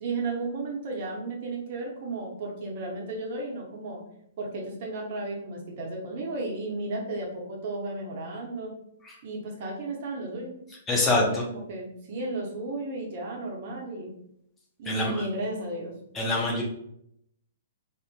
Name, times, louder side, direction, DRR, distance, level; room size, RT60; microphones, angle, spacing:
voice 1, 0.0-4.0 4.4-8.7 9.2-10.6 11.1-14.1 14.8-15.9, right 2 dB, 45° right, -2 dB, 0.6 m, -34 dB
voice 2, 10.9-11.4 14.9-15.2 16.1-16.6, left 2 dB, 15° left, -2 dB, 0.4 m, -25 dB
2.5 x 2.1 x 2.3 m, 0.73 s
figure-of-eight pair, 115°, 0 cm